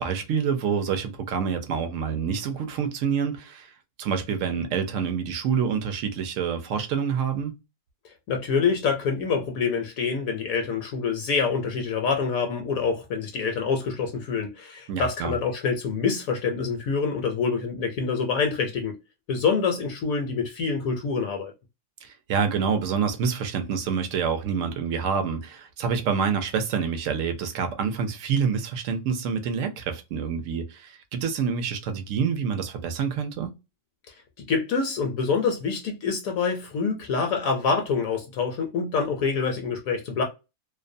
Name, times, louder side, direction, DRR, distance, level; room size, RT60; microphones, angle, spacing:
voice 1, 0.0-3.7 4.0-7.5 14.9-15.3 22.0-33.5, right 6 dB, 70° right, 0.8 m, -27 dB
voice 2, 8.0-18.9 19.3-21.5 34.4-40.2, left 5 dB, 70° left, 0.9 m, -26 dB
2.6 x 2.1 x 2.5 m
omnidirectional pair, 1.6 m